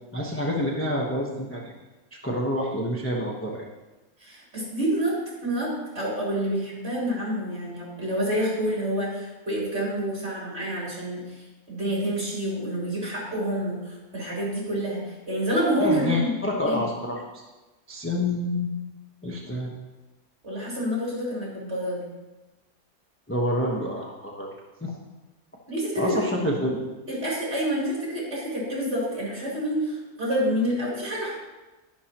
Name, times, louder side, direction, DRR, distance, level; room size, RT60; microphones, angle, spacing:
voice 1, 0.1-1.7 2.2-3.6 15.8-17.4 17.9-18.7 19.2-19.7 23.3-24.5 24.8-24.9 26.0-26.8, left 1 dB, 10° left, -3 dB, 1.0 m, -27 dB
voice 2, 4.2-5.2 5.4-16.3 16.6-16.8 20.4-22.1 25.7-26.2 27.1-31.3, equal, 40° right, -6 dB, 4.3 m, -28 dB
11.0 x 11.0 x 3.0 m, 1.1 s
omnidirectional pair, 1.6 m